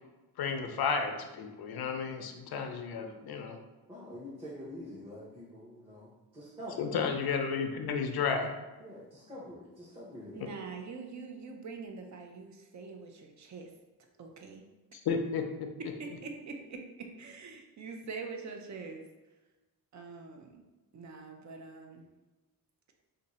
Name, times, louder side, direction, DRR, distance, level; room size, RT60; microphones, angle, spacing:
voice 1, 0.4-3.6 6.8-8.5 14.9-15.7, left 5 dB, 70° left, 5 dB, 0.6 m, -32 dB
voice 2, 3.9-6.7 8.8-10.5, equal, 15° right, -8 dB, 0.8 m, -46 dB
voice 3, 10.3-13.7 14.2-14.7 16.0-19.0 19.9-20.6 20.9-22.0, right 4 dB, 45° right, 3 dB, 0.5 m, -44 dB
2.7 x 2.6 x 4.1 m, 1.1 s
wide cardioid pair, 140°, 39 cm